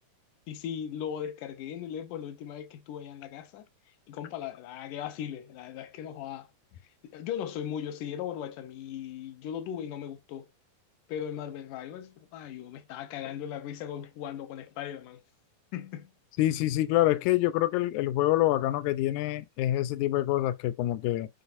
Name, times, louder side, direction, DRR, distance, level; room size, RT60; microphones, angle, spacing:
voice 1, 0.5-3.7 4.1-6.5 7.0-10.5 11.1-15.2 15.7-16.1, left 9 dB, 70° left, 2.2 m, -38 dB
voice 2, 16.4-21.3, left 15 dB, 90° left, 1.7 m, -26 dB
7.9 x 4.8 x 2.5 m
omnidirectional pair, 4.1 m